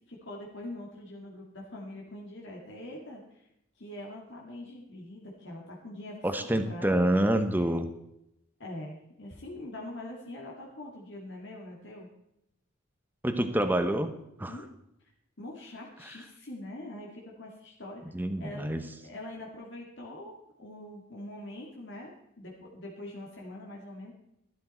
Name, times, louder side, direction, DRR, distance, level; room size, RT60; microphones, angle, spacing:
voice 1, 0.1-3.5 3.8-7.0 8.6-12.1 14.5-14.6 15.4-18.0 18.4-24.1, left 1 dB, 60° left, -2 dB, 2.2 m, -43 dB
voice 2, 6.2-7.9 13.2-14.6 18.1-18.8, right 1 dB, 10° right, 8 dB, 0.9 m, -27 dB
12.5 x 12.0 x 4.3 m, 0.82 s
head